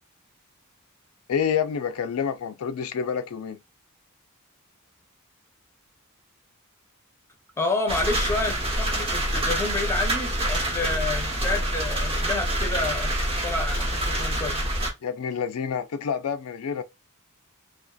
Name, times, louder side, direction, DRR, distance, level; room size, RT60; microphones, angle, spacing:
voice 1, 1.3-3.6 15.0-16.8, left 7 dB, 80° left, 0.4 m, -28 dB
voice 2, 7.6-13.1 13.4-14.6, left 2 dB, 10° left, 0.6 m, -29 dB
sound 1, 7.9-14.9, right 1 dB, 25° right, 0.9 m, -26 dB
2.5 x 2.4 x 2.3 m
head